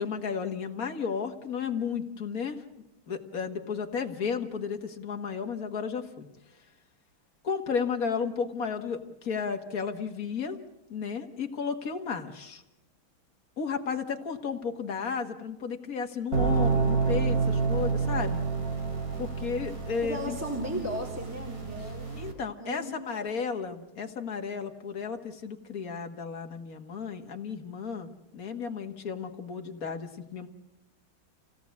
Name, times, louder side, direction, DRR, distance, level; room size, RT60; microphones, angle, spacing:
voice 1, 0.0-2.6 3.1-6.3 7.4-10.6 10.9-12.6 13.6-18.4 19.2-20.4 22.2-30.5, left 6 dB, 45° left, 6 dB, 2.0 m, -33 dB
sound 1, 16.3-22.3, right 5 dB, 45° right, 3.5 m, -29 dB
voice 2, 20.0-23.1, equal, 5° right, -1 dB, 3.5 m, -36 dB
28.5 x 17.0 x 8.4 m, 0.95 s
omnidirectional pair, 2.2 m